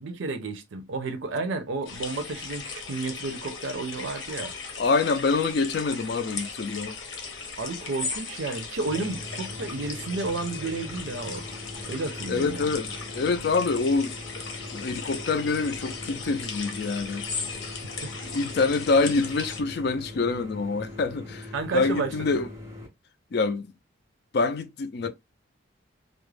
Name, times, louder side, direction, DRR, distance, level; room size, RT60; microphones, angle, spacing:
voice 1, 0.0-4.5 7.6-11.4 11.9-12.8 17.5-17.6 18.0-18.1 21.5-22.5, right 3 dB, 70° right, 0.5 m, -32 dB
sound 1, 1.8-19.6, left 4 dB, 75° left, 0.8 m, -37 dB
voice 2, 4.8-7.0 12.3-14.2 14.7-17.2 18.3-22.5 23.3-23.7 24.3-25.1, left 4 dB, 50° left, 0.4 m, -26 dB
sound 2, 8.9-22.9, left 1 dB, 15° right, 0.6 m, -41 dB
2.4 x 2.1 x 3.2 m
head